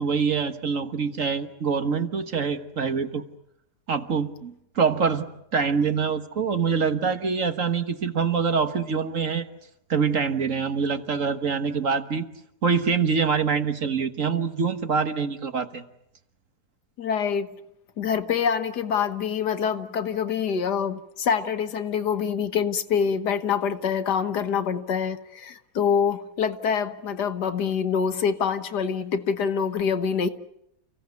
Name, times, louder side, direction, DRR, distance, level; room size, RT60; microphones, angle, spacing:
voice 1, 0.0-3.2 3.9-5.3 5.5-9.5 9.9-12.3 12.6-15.8, right 5 dB, 50° right, 1.7 m, -25 dB
voice 2, 17.0-17.5 18.0-30.3, left 7 dB, 75° left, 1.8 m, -25 dB
30.0 x 16.5 x 9.4 m
omnidirectional pair, 1.8 m